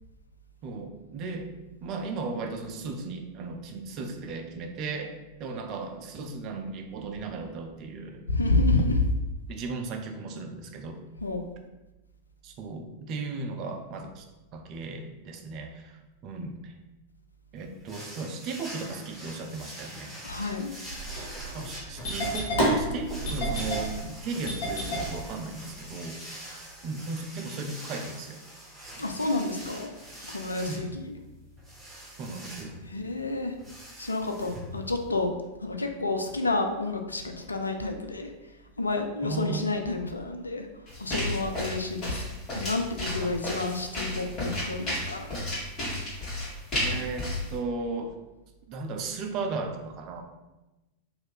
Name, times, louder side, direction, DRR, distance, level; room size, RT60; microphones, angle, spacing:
voice 1, 0.6-1.5 1.8-5.1 5.4-8.2 9.5-11.0 12.4-14.2 14.5-16.7 17.5-20.2 21.5-28.4 29.0-29.1 30.7-30.8 32.2-32.8 39.2-39.7 43.2-43.4 46.7-48.1 48.7-50.2, right 3 dB, 40° right, 4 dB, 0.4 m, -36 dB
voice 2, 8.3-9.0 11.2-11.4 20.2-20.7 29.0-29.9 30.2-31.2 32.9-33.5 34.0-35.3 35.6-38.3 38.8-40.7 41.0-42.2 42.5-45.3, left 2 dB, 80° left, 4 dB, 0.3 m, -29 dB
sound 1, 17.9-35.2, equal, 5° right, 0.9 m, -44 dB
Engine starting, 20.9-25.9, right 1 dB, 55° left, 0.8 m, -30 dB
sound 2, 40.9-47.5, left 1 dB, 30° left, 1.4 m, -32 dB
2.7 x 2.5 x 3.3 m, 1.0 s
figure-of-eight pair, 90°, 0 cm